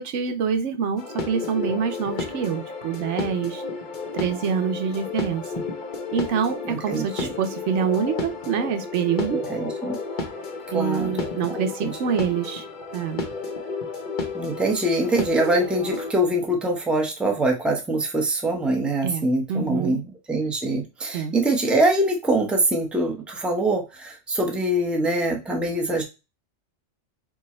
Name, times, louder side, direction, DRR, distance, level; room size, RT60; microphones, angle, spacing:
voice 1, 0.0-3.6 4.1-5.6 6.1-9.4 10.7-12.6 12.9-13.2 19.0-20.0 21.1-21.3, right 7 dB, 80° right, 7 dB, 1.0 m, -26 dB
sound 1, 1.0-16.1, left 3 dB, 45° left, 0.9 m, -32 dB
voice 2, 6.7-7.3 9.3-10.0 10.7-12.0 14.3-26.0, right 1 dB, ahead, 2 dB, 0.7 m, -24 dB
4.8 x 2.4 x 4.2 m, 0.27 s
omnidirectional pair, 1.2 m